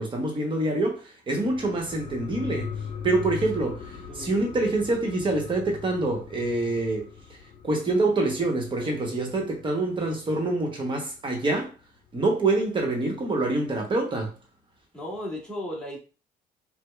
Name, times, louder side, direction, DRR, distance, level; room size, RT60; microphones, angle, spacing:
voice 1, 0.0-7.1 7.6-11.7 12.1-14.3, right 2 dB, 30° right, 1.0 m, -26 dB
sound 1, 1.4-10.5 10.8-10.9, left 7 dB, 35° left, 1.0 m, -40 dB
voice 2, 3.6-4.3 14.9-16.0, left 1 dB, 5° left, 1.6 m, -36 dB
4.7 x 2.1 x 2.3 m
cardioid pair, 110°, 17 cm